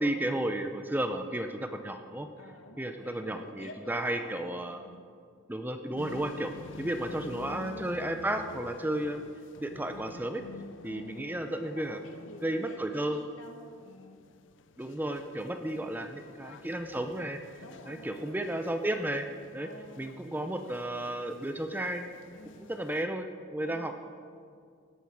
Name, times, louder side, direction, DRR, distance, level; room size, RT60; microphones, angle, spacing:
voice 1, 0.0-2.3 2.8-4.8 5.5-6.5 6.8-9.2 9.6-10.4 10.8-12.0 12.4-13.2 14.8-17.4 17.9-19.3 19.5-19.7 20.0-22.1 22.7-23.9, right 1 dB, 10° right, 6 dB, 0.5 m, -33 dB
voice 2, 2.4-5.1 10.8-14.2 15.6-16.0 17.6-18.6 19.6-20.1 22.3-22.8 23.6-23.9, left 1 dB, 75° left, 3 dB, 1.8 m, -50 dB
sound 1, 6.0-23.0, left 3 dB, 60° left, 0.5 m, -49 dB
17.5 x 11.5 x 4.8 m, 2.2 s
head